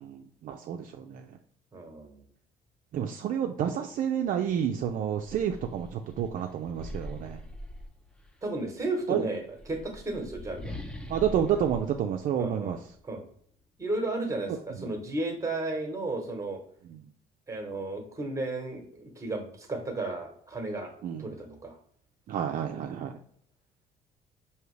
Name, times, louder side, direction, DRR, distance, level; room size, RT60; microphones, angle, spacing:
voice 1, 0.0-1.4 2.9-7.4 9.1-9.2 11.1-12.8 14.5-14.9 16.9-17.0 21.0-21.3 22.3-23.2, right 9 dB, 55° right, 4 dB, 0.4 m, -30 dB
voice 2, 1.7-2.3 8.4-10.8 12.4-12.8 13.0-13.3 13.8-16.6 17.5-20.9 21.2-21.8, right 2 dB, 20° right, 4 dB, 1.1 m, -34 dB
sound 1, 4.2-4.4 4.8-8.4 9.4-13.0, left 1 dB, 5° left, 0.4 m, -43 dB
4.9 x 2.8 x 3.1 m, 0.63 s
cardioid pair, 110°, 17 cm